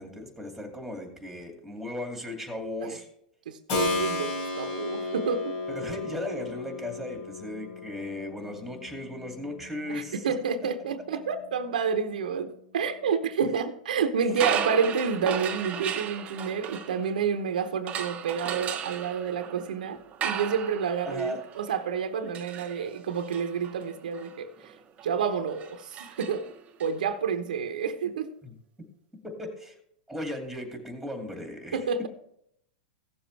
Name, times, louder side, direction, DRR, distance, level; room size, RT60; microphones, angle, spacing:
voice 1, 0.0-3.1 5.7-10.3 21.1-21.4 28.4-28.6 29.2-29.8 30.1-31.8, left 1 dB, ahead, 2.4 m, -36 dB
voice 2, 3.5-5.6 9.9-24.7 25.0-26.5 26.8-28.3 31.7-32.1, right 6 dB, 80° right, 0.9 m, -29 dB
Keyboard (musical), 3.7-12.3, left 3 dB, 55° left, 3.6 m, -35 dB
sound 1, 14.3-17.4 17.9-26.9, right 8 dB, 30° right, 0.9 m, -36 dB
16.0 x 7.1 x 3.3 m
hypercardioid pair, 115°, 4 cm